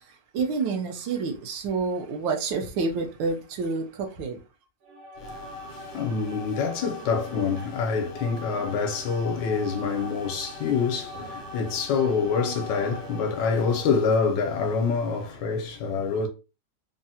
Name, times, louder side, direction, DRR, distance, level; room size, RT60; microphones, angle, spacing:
voice 1, 0.3-4.4, right 4 dB, 85° right, 1.4 m, -28 dB
sound 1, 4.8-14.3, left 1 dB, 60° right, 0.8 m, -41 dB
voice 2, 5.2-16.3, left 5 dB, 80° left, 1.2 m, -26 dB
3.6 x 2.0 x 2.7 m
omnidirectional pair, 2.0 m